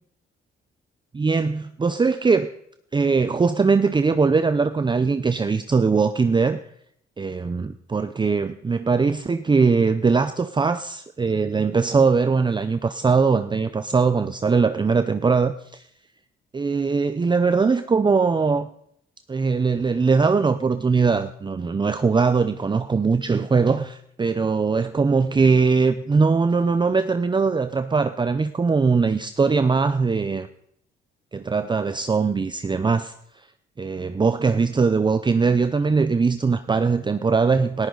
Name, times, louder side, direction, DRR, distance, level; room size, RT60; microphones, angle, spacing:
voice 1, 1.1-2.5 2.9-6.6 7.2-15.8 16.5-18.7 19.3-30.5 31.3-33.1 33.8-37.9, right 4 dB, 25° right, 10 dB, 0.7 m, -21 dB
19.5 x 14.0 x 4.0 m, 0.69 s
cardioid pair, 90°, 20 cm